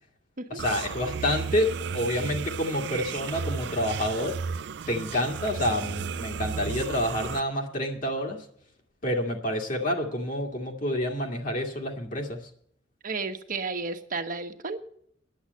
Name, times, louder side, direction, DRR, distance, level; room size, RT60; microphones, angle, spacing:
voice 1, 0.5-4.4 4.9-8.4 9.0-12.4, left 1 dB, 45° left, 1 dB, 2.0 m, -28 dB
sound 1, 0.6-7.4, right 6 dB, 65° right, 0.4 m, -34 dB
voice 2, 13.0-14.8, right 4 dB, 50° right, 6 dB, 1.2 m, -32 dB
10.5 x 8.1 x 8.2 m, 0.63 s
head